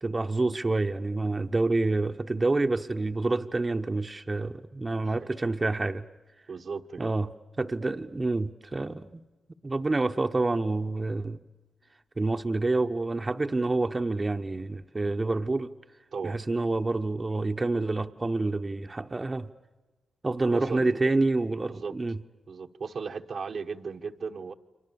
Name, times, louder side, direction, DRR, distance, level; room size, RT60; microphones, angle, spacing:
voice 1, 0.0-6.1 7.0-7.3 7.6-9.2 9.6-11.4 12.2-15.7 16.2-19.5 20.2-22.2, right 2 dB, 30° right, 1.0 m, -28 dB
voice 2, 6.5-7.1 16.1-16.4 20.5-21.0 21.7-22.0 22.5-24.5, right 5 dB, 60° right, 1.1 m, -36 dB
29.5 x 24.0 x 7.0 m
cardioid pair, 60°, 0 cm